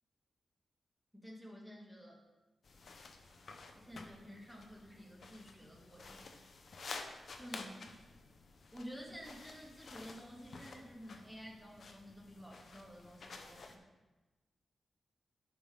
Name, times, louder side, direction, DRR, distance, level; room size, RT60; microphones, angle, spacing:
voice 1, 1.2-2.2 3.7-6.3 7.4-7.8 8.7-13.8, equal, 5° left, -2 dB, 2.2 m, -51 dB
sound 1, 2.6-13.8, left 4 dB, 65° left, 0.8 m, -52 dB
11.0 x 6.1 x 3.6 m, 1.2 s
cardioid pair, 70°, 0 cm